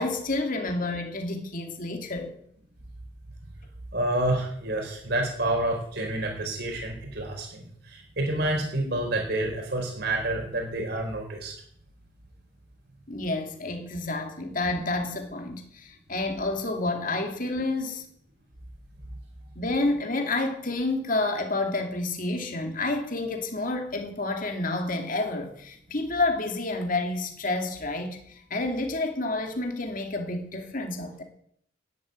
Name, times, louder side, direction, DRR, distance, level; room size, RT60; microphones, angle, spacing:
voice 1, 0.0-2.3 13.1-18.0 19.6-31.2, left 2 dB, 45° left, 2.5 m, -29 dB
voice 2, 3.9-11.5, right 1 dB, 55° right, 4.4 m, -28 dB
12.5 x 10.5 x 9.5 m
head